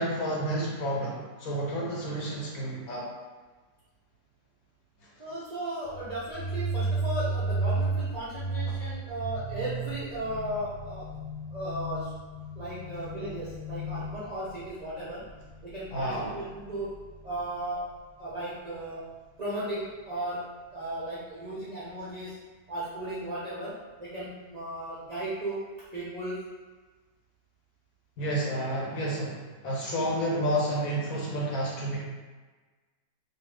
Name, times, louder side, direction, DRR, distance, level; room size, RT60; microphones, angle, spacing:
voice 1, 0.0-3.1 15.9-16.4 28.2-32.0, right 1 dB, 65° left, -4 dB, 1.0 m, -30 dB
voice 2, 5.2-11.1 11.5-12.1 12.6-15.2 15.6-16.9 17.2-17.8 18.2-19.0 19.4-20.4 20.7-22.3 22.7-23.7 24.0-25.6 25.9-26.4, right 1 dB, 60° right, -10 dB, 0.4 m, -35 dB
sound 1, 5.8-17.4, right 2 dB, 45° left, 0.7 m, -34 dB
2.6 x 2.5 x 3.2 m, 1.3 s
omnidirectional pair, 1.8 m